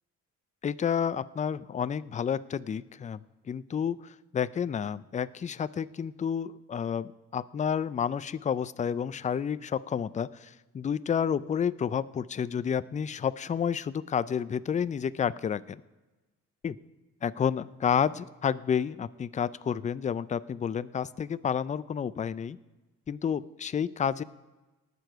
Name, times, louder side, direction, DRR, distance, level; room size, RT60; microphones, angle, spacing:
voice 1, 0.6-3.2 3.5-15.8 16.6-16.8 17.2-22.6 23.1-24.2, left 7 dB, 25° left, 16 dB, 0.4 m, -30 dB
19.0 x 6.9 x 4.7 m, 1.2 s
cardioid pair, 90°, 30 cm